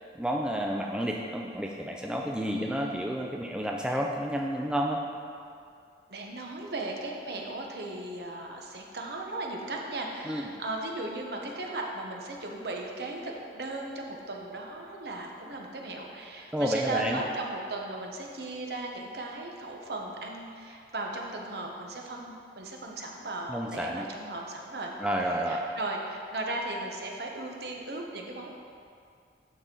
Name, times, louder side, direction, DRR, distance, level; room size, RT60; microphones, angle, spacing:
voice 1, 0.1-5.0 10.3-10.5 16.5-17.2 23.5-24.1 25.0-25.6, equal, 5° right, 0 dB, 0.4 m, -30 dB
voice 2, 2.4-3.1 6.1-24.9 25.5-28.5, right 2 dB, 60° right, 0 dB, 0.8 m, -37 dB
11.5 x 4.1 x 3.8 m, 2.4 s
head